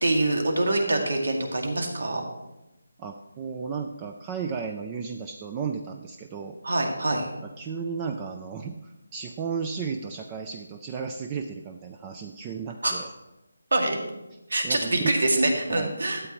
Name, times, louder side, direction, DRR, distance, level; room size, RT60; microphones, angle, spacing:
voice 1, 0.0-2.2 6.6-7.3 12.8-12.9 13.7-14.0 14.5-16.2, right 2 dB, 80° right, 2 dB, 2.1 m, -25 dB
voice 2, 3.0-6.6 7.4-13.1 14.6-15.2 15.7-15.9, right 6 dB, 15° right, 4 dB, 0.3 m, -34 dB
12.5 x 8.0 x 3.0 m, 0.97 s
figure-of-eight pair, 170°, 0 cm